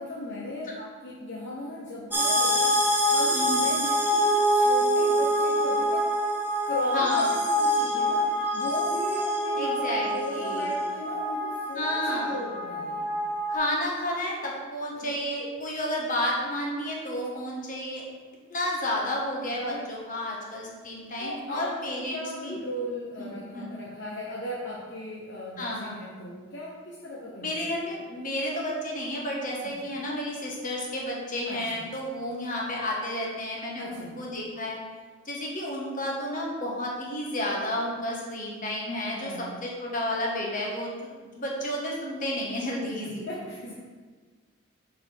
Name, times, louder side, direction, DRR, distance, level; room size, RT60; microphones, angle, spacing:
voice 1, 0.0-6.1 6.7-13.1 14.9-15.1 15.4-15.5 19.5-19.9 21.2-27.7 29.6-29.7 31.5-31.9 33.8-34.2 39.1-39.5 42.8-43.7, left 1 dB, 55° left, -4 dB, 0.9 m, -37 dB
sound 1, 2.1-13.6, equal, 10° right, 0.7 m, -25 dB
voice 2, 6.9-7.3 9.5-10.7 11.7-12.4 13.5-18.0 18.5-22.6 23.2-23.7 25.6-26.0 27.4-34.8 35.2-39.3 39.6-43.2, left 1 dB, 40° left, -2 dB, 1.4 m, -31 dB
6.7 x 5.0 x 4.4 m, 1.5 s
head